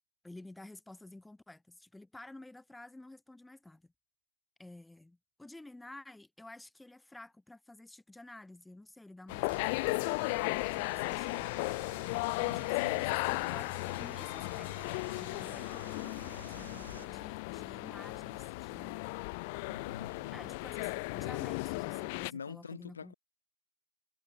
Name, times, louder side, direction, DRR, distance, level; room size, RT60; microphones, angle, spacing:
voice 1, 0.2-3.9 4.6-11.5 12.4-13.7 14.0-19.1 20.3-23.1, left 2 dB, ahead, 2.5 m, -52 dB
sound 1, 9.3-22.3, left 27 dB, 20° left, 0.3 m, -35 dB
sound 2, 9.4-17.1, right 7 dB, 45° right, 3.4 m, -53 dB
voice 2, 12.5-13.2 19.7-20.4 22.3-23.1, left 6 dB, 50° left, 2.8 m, -46 dB
hypercardioid pair, 165°, 0 cm